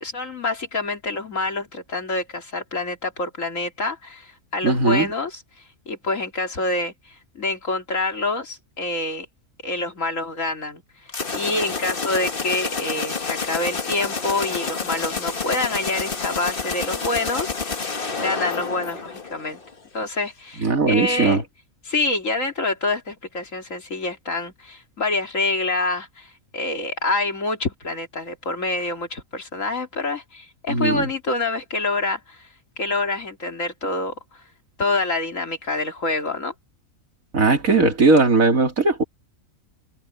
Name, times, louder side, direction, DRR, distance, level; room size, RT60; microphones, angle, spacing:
voice 1, 0.0-5.4 5.9-9.3 9.6-17.9 18.2-19.6 19.9-21.4 21.8-32.5 32.8-34.4 34.8-36.5, left 2 dB, 70° left, 3.2 m, -26 dB
voice 2, 4.6-5.1 20.6-21.4 30.7-31.1 37.3-39.0, right 3 dB, 80° right, 3.1 m, -18 dB
sound 1, 11.1-19.7, left 4 dB, 40° left, 1.6 m, -29 dB
omnidirectional pair, 1.4 m